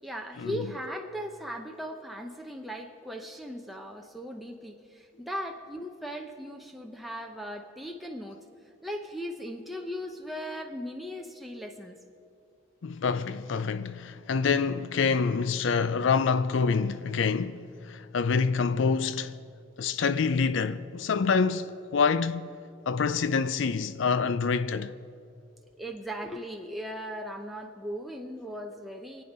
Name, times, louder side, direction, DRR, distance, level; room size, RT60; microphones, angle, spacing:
voice 1, 0.0-8.4 8.8-12.0 18.7-18.8 25.8-29.2, equal, ahead, 0.7 m, -38 dB
voice 2, 12.8-19.4 19.8-22.6 22.9-24.9, left 5 dB, 60° left, 0.4 m, -26 dB
25.0 x 8.9 x 5.4 m
head